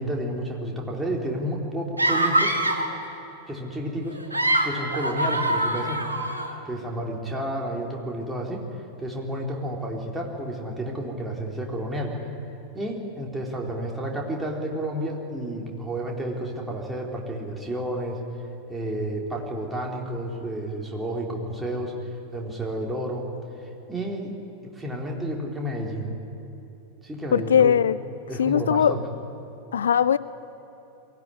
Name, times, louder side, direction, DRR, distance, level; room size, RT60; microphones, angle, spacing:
voice 1, 0.0-2.6 3.5-6.0 6.7-8.7 9.0-12.2 12.7-18.2 18.7-22.0 22.3-23.3 23.9-24.3 24.7-26.1 27.0-27.7 28.3-29.0, right 1 dB, 10° right, -1 dB, 3.7 m, -31 dB
sound 1, 2.0-2.9 4.1-6.5, right 1 dB, 80° right, 2.0 m, -24 dB
voice 2, 27.3-28.0 28.4-29.0 29.7-30.2, left 8 dB, 65° left, 17 dB, 0.4 m, -19 dB
22.5 x 17.0 x 9.8 m, 3.0 s
figure-of-eight pair, 90°, 0 cm